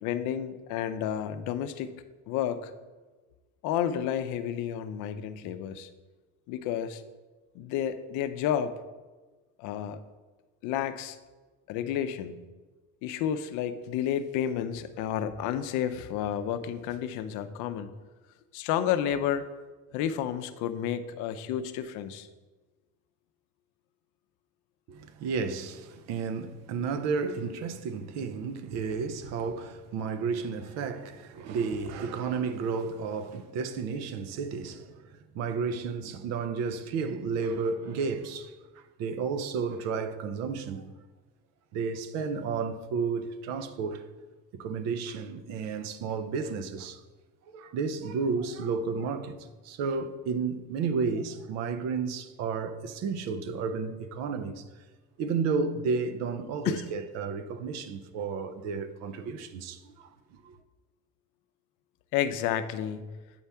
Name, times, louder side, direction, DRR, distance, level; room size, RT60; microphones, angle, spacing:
voice 1, 0.0-1.9 2.3-2.7 3.6-5.9 6.5-7.0 7.5-8.7 9.6-10.0 10.6-11.2 11.7-12.4 13.0-17.9 18.5-19.5 19.9-22.3 56.6-56.8 62.1-63.2, left 9 dB, 75° left, 0.6 m, -31 dB
voice 2, 24.9-35.0 35.3-38.6 39.0-40.9 41.7-44.1 44.5-47.0 47.5-54.6 55.2-60.1 60.4-60.6, right 5 dB, 60° right, 0.6 m, -32 dB
8.5 x 5.5 x 3.5 m
cardioid pair, 180°, 30 cm